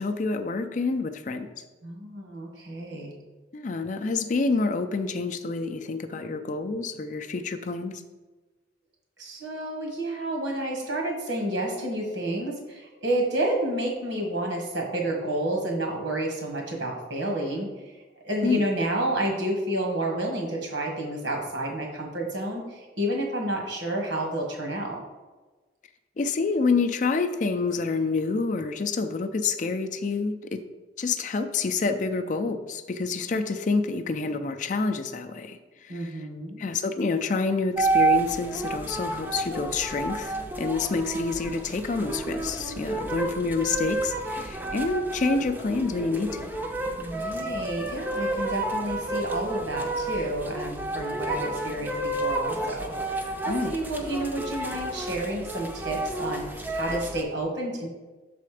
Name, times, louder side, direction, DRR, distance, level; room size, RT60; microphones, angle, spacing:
voice 1, 0.0-1.5 3.5-8.0 18.4-18.6 26.2-30.6 31.0-36.3 36.6-46.5 53.5-53.7, left 4 dB, 40° left, 7 dB, 0.4 m, -28 dB
voice 2, 1.8-3.2 9.2-17.9 18.2-25.0 35.9-36.7 47.0-57.9, right 1 dB, 75° right, 1 dB, 1.6 m, -30 dB
sound 1, 37.8-57.2, right 2 dB, 10° right, 0.5 m, -30 dB
6.7 x 4.2 x 4.9 m, 1.2 s
head